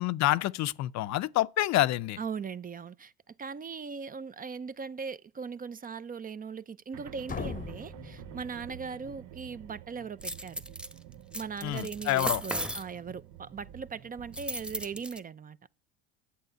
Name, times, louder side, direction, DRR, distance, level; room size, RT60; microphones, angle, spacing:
voice 1, 0.0-2.2 11.6-12.4, left 15 dB, 55° left, 0.7 m, -27 dB
voice 2, 2.2-10.6 11.3-15.6, right 6 dB, 25° right, 0.6 m, -39 dB
sound 1, 6.9-15.0, right 11 dB, 65° right, 1.0 m, -49 dB
sound 2, 7.3-9.1, left 6 dB, 25° left, 0.9 m, -40 dB
sound 3, 10.2-10.9 11.3-12.8 14.3-15.2, equal, 5° right, 1.1 m, -35 dB
11.5 x 8.4 x 8.0 m
supercardioid pair, 95°, 33 cm